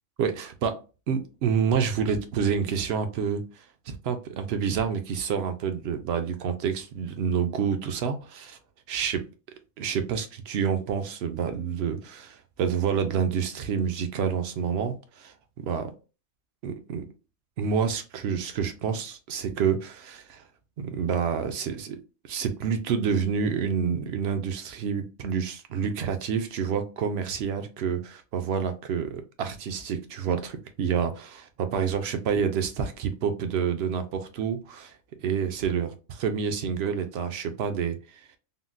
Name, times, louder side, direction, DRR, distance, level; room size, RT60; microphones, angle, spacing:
voice 1, 0.2-0.8 1.1-8.6 8.9-9.2 9.8-15.9 16.6-17.0 17.6-20.4 20.8-22.0 22.3-34.9 35.2-38.2, right 7 dB, 65° right, 0.7 m, -28 dB
3.7 x 2.1 x 2.4 m
omnidirectional pair, 1.4 m